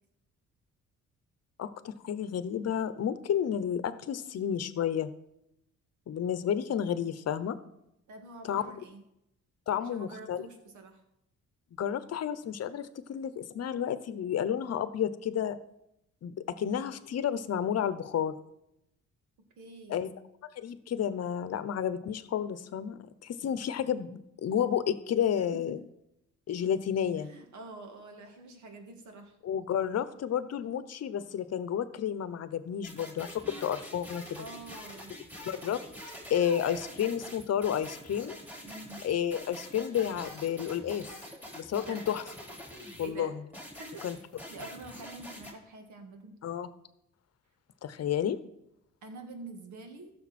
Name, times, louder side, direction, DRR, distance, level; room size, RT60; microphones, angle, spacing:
voice 1, 1.6-5.1 6.1-7.6 8.5-8.6 9.7-10.4 11.8-15.6 16.2-18.4 19.9-20.1 20.6-25.8 26.5-27.3 29.4-34.2 35.5-35.8 36.3-38.4 39.0-41.1 41.5-42.2 43.0-43.3 44.0-44.2 46.4-46.7 47.8-48.4, left 9 dB, 55° left, 14 dB, 0.9 m, -31 dB
voice 2, 8.1-9.0 9.8-11.0 19.6-20.0 25.3-25.8 27.2-29.3 34.4-35.1 38.6-39.0 41.7-42.0 43.0-43.3 43.8-44.2 44.5-46.3 49.0-50.1, right 2 dB, 70° right, 5 dB, 2.0 m, -46 dB
sound 1, 32.8-43.1 43.5-45.5, equal, 5° right, 4.3 m, -45 dB
15.0 x 6.7 x 4.3 m, 0.83 s
cardioid pair, 90°, 30 cm